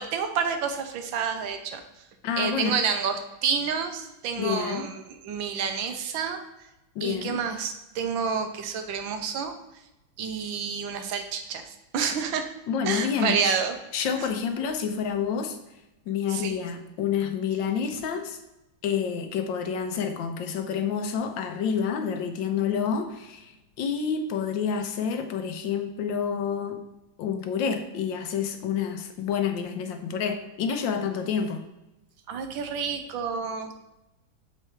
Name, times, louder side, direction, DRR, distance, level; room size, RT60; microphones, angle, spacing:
voice 1, 0.0-1.8 2.4-6.4 7.0-9.5 10.2-12.5 12.8-13.8 14.2-14.3 16.3-16.6 32.3-33.7, right 6 dB, 75° right, 6 dB, 1.5 m, -29 dB
voice 2, 2.2-2.7 4.4-4.8 6.9-7.3 12.7-13.6 13.9-15.6 16.1-18.4 18.8-26.8 27.2-31.6, left 7 dB, 75° left, 7 dB, 1.4 m, -28 dB
7.0 x 4.4 x 4.5 m, 0.95 s
omnidirectional pair, 2.2 m